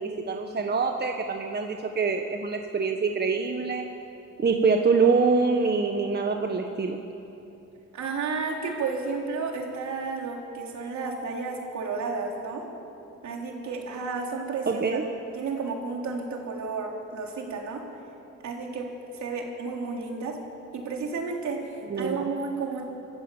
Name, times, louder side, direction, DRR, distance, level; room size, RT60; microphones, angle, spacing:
voice 1, 0.0-3.9 4.4-7.1 14.7-15.1 21.9-22.2, right 4 dB, 35° right, 4 dB, 1.4 m, -25 dB
voice 2, 7.9-12.6 13.2-15.0 15.3-17.8 18.4-18.9 19.1-20.4 20.7-22.8, right 4 dB, 70° right, 0 dB, 3.8 m, -32 dB
25.5 x 15.0 x 7.3 m, 2.9 s
cardioid pair, 90°, 30 cm